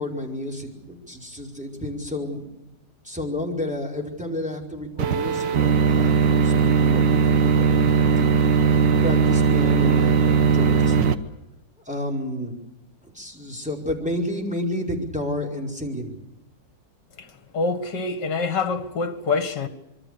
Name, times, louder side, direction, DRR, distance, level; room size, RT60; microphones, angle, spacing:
voice 1, 0.0-2.6 3.0-8.3 9.0-11.0 11.8-12.5 13.0-16.1, left 1 dB, 5° right, 5.0 m, -31 dB
sound 1, 5.0-11.1, right 6 dB, 75° right, 1.9 m, -19 dB
voice 2, 17.2-19.7, left 4 dB, 65° left, 2.5 m, -26 dB
26.0 x 24.0 x 6.8 m
omnidirectional pair, 2.0 m